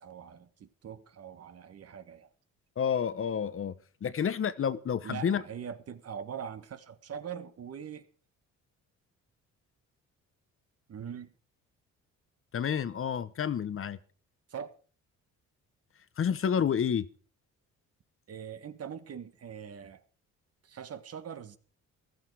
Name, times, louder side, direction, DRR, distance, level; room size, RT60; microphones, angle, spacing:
voice 1, 0.0-2.3 5.0-8.1 10.9-11.3 14.5-14.8 18.3-20.0 20.6-21.6, right 8 dB, 55° right, 1.5 m, -42 dB
voice 2, 2.8-3.7 4.0-5.4 12.5-14.0 16.2-17.1, left 7 dB, 45° left, 1.0 m, -29 dB
14.5 x 13.5 x 4.8 m
cardioid pair, 90°, 30 cm